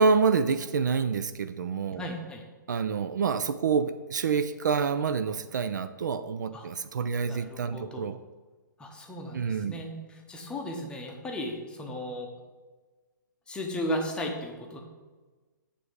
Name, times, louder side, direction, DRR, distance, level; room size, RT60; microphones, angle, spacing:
voice 1, 0.0-2.0 2.7-8.2 9.3-9.8, right 5 dB, 60° right, 12 dB, 0.4 m, -27 dB
voice 2, 2.0-2.4 6.5-6.7 7.3-8.0 8.8-12.3 13.5-14.8, equal, 10° left, 1 dB, 0.8 m, -35 dB
7.7 x 3.4 x 5.0 m, 1.3 s
figure-of-eight pair, 130°, 11 cm